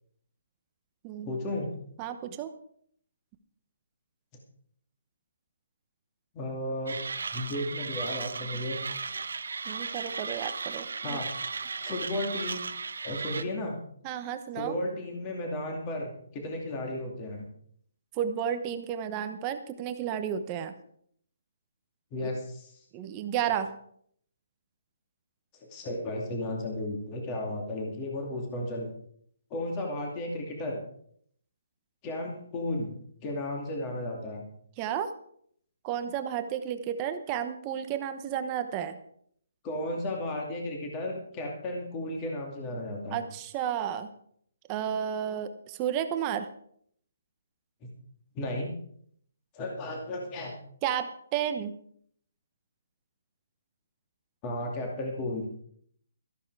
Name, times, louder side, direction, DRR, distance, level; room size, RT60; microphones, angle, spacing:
voice 1, 1.2-1.7 6.3-7.0 7.3-8.8 11.0-11.3 11.8-12.6 13.0-13.8 14.5-17.5 22.1-22.8 25.7-28.9 29.5-30.8 32.0-32.9 33.2-34.4 39.6-43.2 48.3-48.7 49.5-50.5 54.4-55.4, left 1 dB, 20° left, 1 dB, 2.5 m, -34 dB
voice 2, 2.0-2.5 9.7-11.2 14.0-14.7 18.1-20.7 22.9-23.7 34.8-35.1 35.8-39.0 43.1-44.1 44.7-46.5 50.8-51.7, right 9 dB, 20° right, 8 dB, 1.0 m, -32 dB
Mechanisms, 6.9-13.4, right 4 dB, 80° right, 1.2 m, -36 dB
14.0 x 12.0 x 4.8 m, 0.64 s
hypercardioid pair, 170°, 0 cm